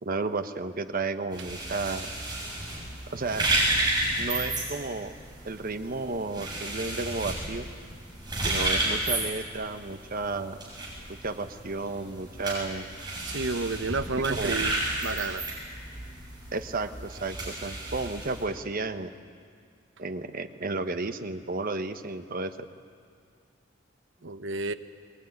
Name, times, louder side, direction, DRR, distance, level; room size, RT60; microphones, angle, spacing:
voice 1, 0.0-2.1 3.1-3.5 4.2-5.1 5.4-7.7 8.4-10.6 11.2-12.9 14.2-14.6 16.5-19.1 20.0-22.6, right 3 dB, 50° right, 9 dB, 1.1 m, -32 dB
sound 1, 1.3-18.4, right 2 dB, 20° right, 7.3 m, -32 dB
voice 2, 13.3-14.8 15.0-15.5 24.2-24.7, right 3 dB, 70° right, 11 dB, 1.0 m, -30 dB
21.5 x 21.5 x 9.8 m, 2.1 s
head